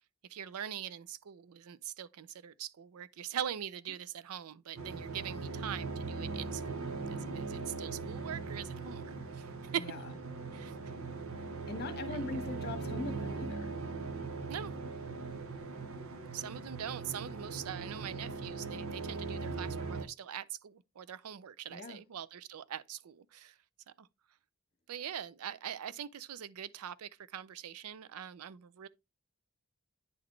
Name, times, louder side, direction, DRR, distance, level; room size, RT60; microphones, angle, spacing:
voice 1, 0.3-9.9 10.5-10.9 12.1-12.2 14.5-14.7 16.3-23.6 24.0-24.1 24.9-28.9, right 9 dB, 85° right, 0.4 m, -42 dB
sound 1, 4.8-20.0, right 4 dB, 65° right, 0.8 m, -40 dB
voice 2, 11.7-13.8 21.7-22.0, left 2 dB, 50° left, 1.3 m, -41 dB
9.8 x 4.0 x 3.1 m
head